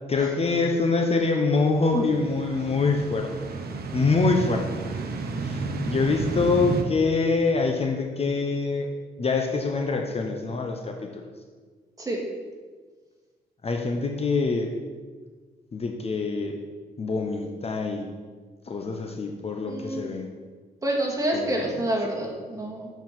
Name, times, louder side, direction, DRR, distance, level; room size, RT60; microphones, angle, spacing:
voice 1, 0.1-3.3 3.9-4.7 5.4-8.9 9.2-11.2 13.6-14.7 15.7-16.6 17.0-18.1 18.7-20.3 21.3-21.5, left 3 dB, 35° left, 3 dB, 0.8 m, -25 dB
sound 1, 1.7-6.8, right 3 dB, 65° right, 0.9 m, -32 dB
voice 2, 19.7-20.0 20.8-22.9, right 1 dB, 20° right, -1 dB, 1.9 m, -28 dB
7.5 x 4.6 x 6.0 m, 1.5 s
cardioid pair, 90°, 17 cm